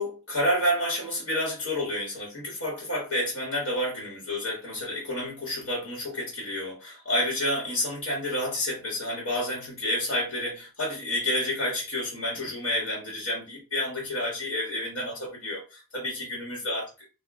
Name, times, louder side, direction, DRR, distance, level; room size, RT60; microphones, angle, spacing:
voice 1, 0.0-16.9, left 1 dB, 70° left, 1.0 m, -29 dB
2.1 x 2.0 x 3.3 m
head